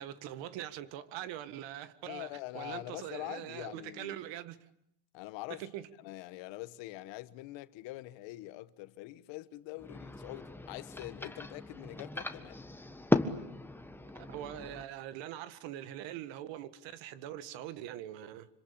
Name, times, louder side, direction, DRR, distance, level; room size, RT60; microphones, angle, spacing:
voice 1, 0.0-4.6 5.6-5.9 14.1-18.5, right 12 dB, 75° right, 1.8 m, -43 dB
voice 2, 2.0-4.2 5.1-5.6 6.0-12.6, left 18 dB, 80° left, 1.4 m, -44 dB
sound 1, 9.8-14.8, left 2 dB, 5° left, 1.5 m, -36 dB
26.0 x 26.0 x 8.8 m
cardioid pair, 115°, 44 cm